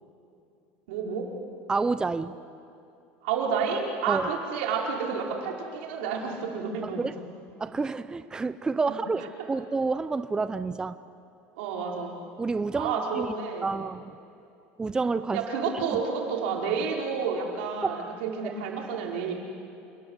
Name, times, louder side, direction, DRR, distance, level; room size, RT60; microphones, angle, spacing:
voice 1, 0.9-1.3 3.2-7.1 11.6-12.2 12.7-13.7 15.3-19.3, right 6 dB, 90° right, -1 dB, 5.1 m, -30 dB
voice 2, 1.7-2.3 4.1-4.3 6.8-7.2 7.6-11.0 12.4-13.3 13.6-14.1 14.8-15.4 15.9-16.0 17.8-17.9 18.4-18.5, right 4 dB, 15° right, 13 dB, 0.6 m, -29 dB
28.0 x 21.0 x 8.2 m, 2.6 s
cardioid pair, 140°, 6 cm